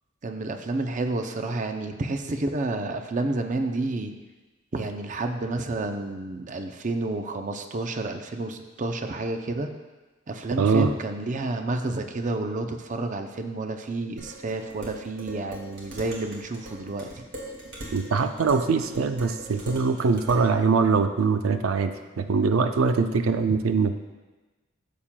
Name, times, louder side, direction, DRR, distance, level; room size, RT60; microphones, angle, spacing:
voice 1, 0.2-4.1 4.7-9.7 10.3-17.2, right 2 dB, 40° right, 6 dB, 0.5 m, -30 dB
voice 2, 10.6-10.9 17.9-23.9, right 4 dB, 90° right, 8 dB, 0.5 m, -23 dB
Dishes pots and pans, 14.2-20.5, right 1 dB, 60° right, 2.1 m, -41 dB
13.0 x 7.2 x 2.2 m, 1.2 s
head